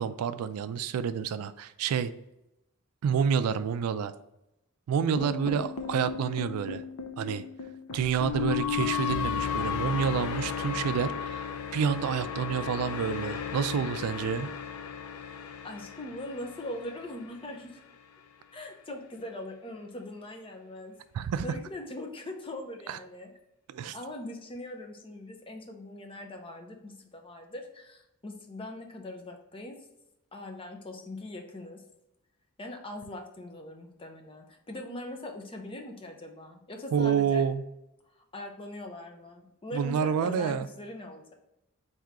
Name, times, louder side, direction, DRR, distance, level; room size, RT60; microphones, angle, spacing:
voice 1, 0.0-2.1 3.0-4.1 4.9-6.8 7.2-7.4 7.9-14.5 21.1-21.5 22.9-23.0 23.7-24.0 36.9-37.6 39.7-40.7, right 7 dB, 80° right, 14 dB, 0.3 m, -28 dB
sound 1, 5.2-17.4, left 7 dB, 75° left, 0.5 m, -34 dB
voice 2, 5.2-5.5 9.4-10.4 15.6-17.8 18.5-23.3 23.7-29.9 30.3-31.8 32.6-37.4 38.2-41.3, left 1 dB, 25° left, 3 dB, 0.6 m, -41 dB
3.6 x 2.7 x 4.6 m, 0.87 s
head